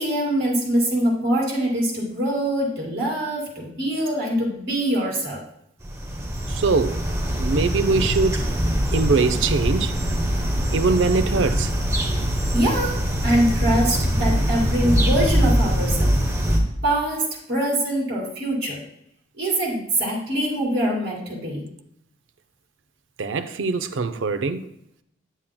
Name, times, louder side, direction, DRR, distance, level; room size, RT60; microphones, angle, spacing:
voice 1, 0.0-5.4 12.5-16.1 16.8-18.8 19.4-21.6, right 1 dB, 55° right, 2.6 m, -24 dB
sound 1, 5.8-16.6, equal, 15° right, 0.9 m, -23 dB
voice 2, 6.5-7.0 7.4-8.5 8.9-10.0 10.7-11.7 23.2-24.7, right 4 dB, 80° right, 0.5 m, -22 dB
10.0 x 7.2 x 2.2 m
head